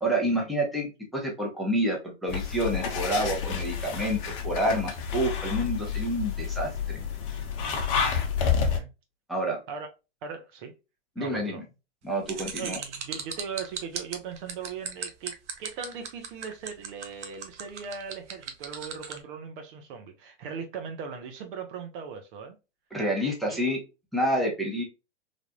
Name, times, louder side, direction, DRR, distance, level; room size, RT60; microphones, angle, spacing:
voice 1, 0.0-7.1 9.3-9.6 11.2-11.6 12.0-12.8 22.9-23.8 24.1-24.8, right 1 dB, ahead, 0.9 m, -28 dB
sound 1, 2.3-8.8, left 7 dB, 45° left, 0.8 m, -29 dB
voice 2, 7.6-8.9 9.7-9.9 10.2-10.7 11.2-11.6 12.3-22.6 23.5-23.6, right 6 dB, 50° right, 0.8 m, -39 dB
sound 2, 12.3-19.2, right 7 dB, 80° right, 0.8 m, -36 dB
3.4 x 2.4 x 2.3 m
hypercardioid pair, 110°, 35 cm